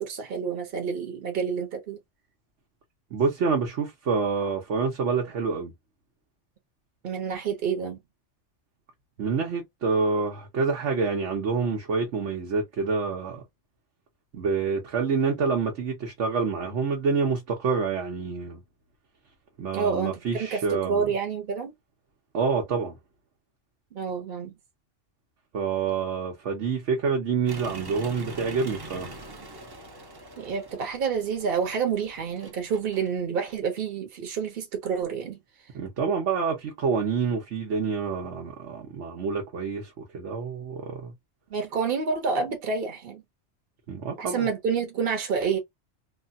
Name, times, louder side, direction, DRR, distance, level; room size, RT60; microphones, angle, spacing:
voice 1, 0.0-2.0 7.0-8.0 19.7-21.7 23.9-24.6 30.4-35.4 41.5-43.2 44.2-45.6, right 6 dB, 55° right, 1.1 m, -28 dB
voice 2, 3.1-5.7 9.2-13.4 14.3-18.6 19.6-21.1 22.3-23.0 25.5-29.1 35.7-41.1 43.9-44.5, right 5 dB, 85° right, 1.2 m, -27 dB
sound 1, 27.5-33.2, right 2 dB, 30° right, 0.5 m, -43 dB
3.2 x 2.2 x 2.6 m
omnidirectional pair, 1.2 m